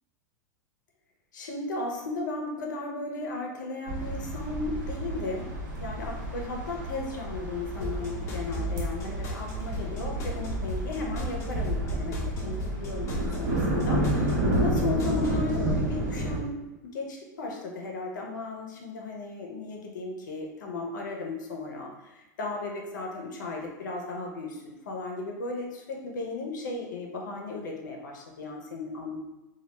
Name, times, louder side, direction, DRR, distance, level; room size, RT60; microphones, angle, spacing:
voice 1, 1.3-5.5 5.8-29.2, left 3 dB, 85° left, 0 dB, 0.6 m, -35 dB
sound 1, 3.9-16.4, right 1 dB, 85° right, 0.8 m, -31 dB
sound 2, 7.8-15.5, right 1 dB, 30° left, 0.6 m, -34 dB
2.3 x 2.1 x 3.0 m, 1.0 s
hypercardioid pair, 115°, 10 cm